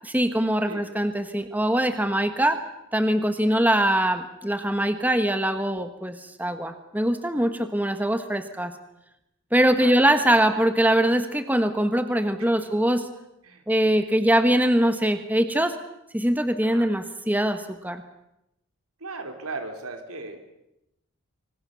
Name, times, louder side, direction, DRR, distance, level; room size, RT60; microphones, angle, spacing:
voice 1, 0.0-2.6 2.9-8.7 9.5-13.1 13.7-15.8 16.1-18.0, right 1 dB, 10° right, 8 dB, 1.4 m, -22 dB
voice 2, 9.6-10.6 12.4-12.6 13.4-13.9 16.6-16.9 19.0-20.4, right 3 dB, 85° right, 6 dB, 4.2 m, -39 dB
26.0 x 25.5 x 7.0 m, 0.86 s
head